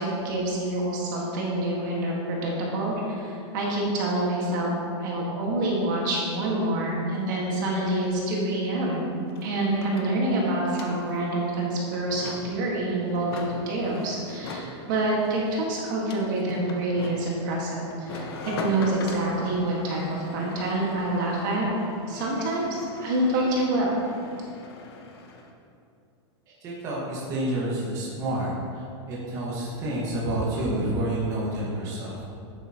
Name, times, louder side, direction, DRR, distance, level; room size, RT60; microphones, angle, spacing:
voice 1, 0.0-4.7 5.0-9.1 9.4-21.7 22.1-24.0, right 1 dB, 45° right, -3 dB, 1.6 m, -27 dB
sound 1, 8.6-8.7 8.9-25.5, left 3 dB, 55° left, 1.1 m, -41 dB
voice 2, 26.5-32.2, right 1 dB, 20° right, -6 dB, 1.6 m, -29 dB
11.0 x 8.1 x 2.9 m, 2.5 s
supercardioid pair, 175°, 15 cm